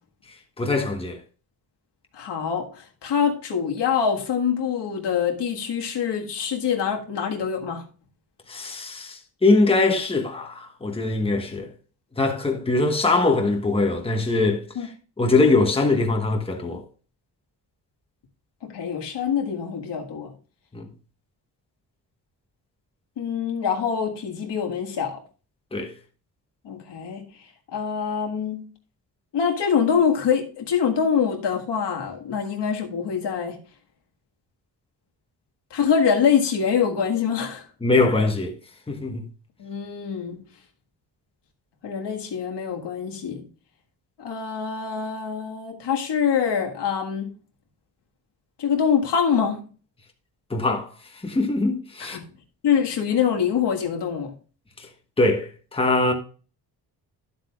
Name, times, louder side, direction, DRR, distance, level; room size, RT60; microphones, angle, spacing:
voice 1, 0.6-1.2 8.5-11.7 12.2-14.9 15.2-16.8 20.7-20.9 25.7-25.9 37.8-38.5 38.9-39.2 50.5-50.9 51.2-52.2 54.8-54.9 55.2-56.1, left 3 dB, 15° left, 1.2 m, -22 dB
voice 2, 2.1-7.8 14.7-14.9 18.6-20.3 23.2-25.2 26.6-27.2 27.7-28.6 29.3-33.6 35.7-37.6 39.6-40.4 41.8-43.4 44.2-47.3 48.6-49.6 52.0-52.2 52.6-54.3, left 7 dB, 80° left, 1.7 m, -24 dB
11.5 x 7.7 x 2.4 m
wide cardioid pair, 130°, 41 cm